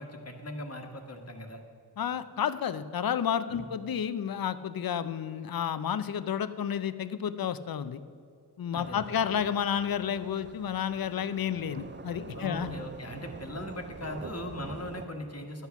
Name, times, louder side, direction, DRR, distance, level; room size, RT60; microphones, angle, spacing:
voice 1, 0.0-1.6 3.5-3.7 8.7-9.2 12.3-15.7, left 1 dB, 40° left, 4 dB, 1.3 m, -39 dB
voice 2, 2.0-8.0 8.6-12.7, left 8 dB, 60° left, 13 dB, 0.6 m, -31 dB
sound 1, 8.8-15.1, right 5 dB, 30° right, 0.4 m, -45 dB
11.5 x 8.2 x 5.8 m, 2.2 s
wide cardioid pair, 95°, 40 cm